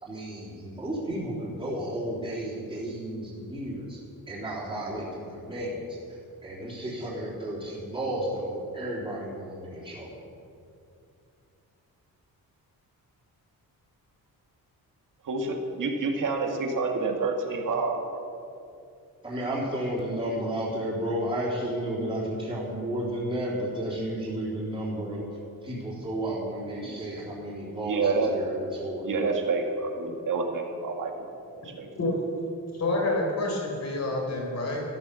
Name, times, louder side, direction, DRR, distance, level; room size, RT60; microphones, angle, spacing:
voice 1, 0.0-4.0 4.3-10.2 19.2-25.3 25.6-29.1, right 1 dB, 15° right, -7 dB, 3.6 m, -32 dB
voice 2, 15.2-18.2 27.8-28.3 29.0-31.1 31.6-31.9, right 3 dB, 60° right, 2 dB, 2.2 m, -28 dB
voice 3, 32.7-34.8, left 2 dB, 45° left, -1 dB, 4.4 m, -28 dB
13.5 x 13.5 x 7.1 m, 2.5 s
wide cardioid pair, 170°, 36 cm